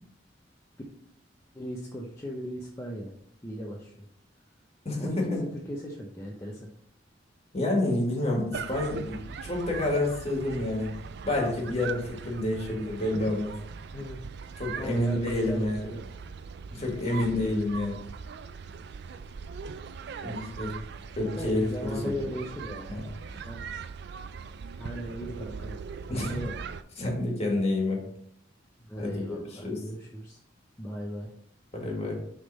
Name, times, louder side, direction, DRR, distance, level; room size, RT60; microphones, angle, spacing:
voice 1, 1.5-3.1 3.4-4.1 5.0-6.7 13.9-14.3 14.8-16.0 17.1-17.2 21.4-22.9 23.3-23.7 24.8-25.8 26.1-26.5 28.8-30.4 30.8-31.3, equal, 15° left, -3 dB, 0.7 m, -38 dB
voice 2, 4.9-5.4 7.5-10.9 11.2-13.6 14.6-15.8 16.7-18.0 20.2-20.8 21.1-22.1 22.9-23.0 26.1-26.3 27.0-28.0 29.0-29.1 29.6-29.8 31.7-32.1, left 1 dB, 35° left, -1 dB, 1.8 m, -28 dB
sound 1, 8.5-26.8, right 5 dB, 60° right, 0.3 m, -40 dB
6.6 x 3.7 x 4.0 m, 0.67 s
head